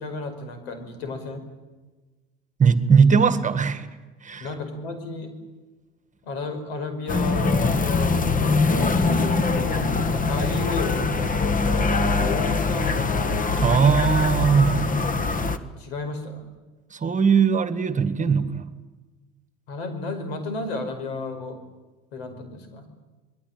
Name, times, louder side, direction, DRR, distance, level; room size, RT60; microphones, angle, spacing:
voice 1, 0.0-1.4 4.4-5.3 6.2-8.3 8.7-13.3 15.6-16.4 19.7-21.6 22.1-22.8, left 3 dB, 75° left, 8 dB, 5.4 m, -32 dB
voice 2, 2.6-3.9 4.2-4.5 13.6-15.0 16.9-18.7, right 6 dB, 25° right, 12 dB, 1.9 m, -19 dB
sound 1, 7.1-15.6, left 3 dB, 25° left, 1.7 m, -23 dB
27.0 x 21.0 x 9.0 m, 1.3 s
hypercardioid pair, 80°, 31 cm